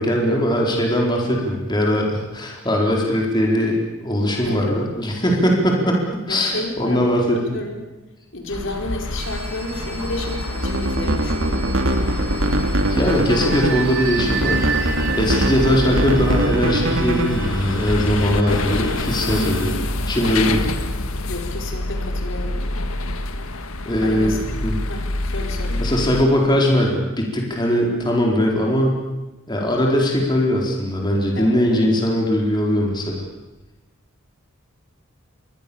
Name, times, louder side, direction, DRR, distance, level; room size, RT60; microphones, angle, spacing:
voice 1, 0.0-6.0 6.3-7.6 12.9-14.7 15.1-19.7 20.1-20.7 23.8-24.4 24.6-24.8 25.8-29.0 29.5-33.2, equal, 20° left, -1 dB, 4.5 m, -20 dB
voice 2, 4.4-4.8 5.3-5.4 6.3-7.2 7.5-7.9 8.3-11.5 18.2-18.7 21.3-22.6 24.0-24.4 24.8-25.8 31.3-31.9, left 2 dB, 60° left, 2 dB, 4.8 m, -31 dB
sound 1, 8.5-26.2, left 2 dB, 85° left, 1.9 m, -27 dB
sound 2, 9.2-19.7, right 6 dB, 45° right, 4.9 m, -33 dB
sound 3, 10.5-17.6, right 1 dB, 70° right, 2.7 m, -22 dB
29.0 x 23.5 x 7.2 m, 1.0 s
head